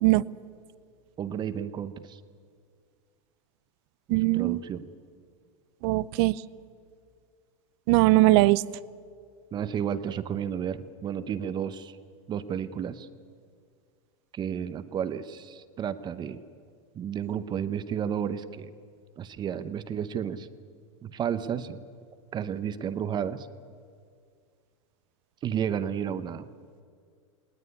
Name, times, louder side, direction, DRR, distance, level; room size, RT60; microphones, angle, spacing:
voice 1, 1.2-2.2 4.1-4.9 9.5-12.0 12.3-13.1 14.3-16.4 16.9-18.7 19.2-20.5 21.0-21.8 22.3-23.5 25.4-26.5, right 8 dB, 25° right, 12 dB, 0.8 m, -32 dB
voice 2, 4.1-4.6 5.8-6.4 7.9-8.6, right 19 dB, 55° right, 20 dB, 0.6 m, -20 dB
19.5 x 18.5 x 9.7 m, 2.1 s
hypercardioid pair, 125°, 17 cm